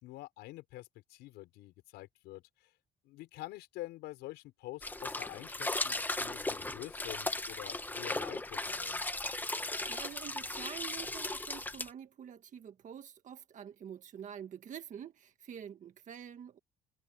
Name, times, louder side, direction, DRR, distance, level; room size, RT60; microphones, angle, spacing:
voice 1, 0.0-2.4 3.0-9.0, left 17 dB, 90° left, 5.7 m, -47 dB
sound 1, 4.8-11.9, left 2 dB, 10° left, 1.2 m, -37 dB
voice 2, 9.9-16.6, right 9 dB, 45° right, 1.6 m, -47 dB
cardioid pair, 110°, 17 cm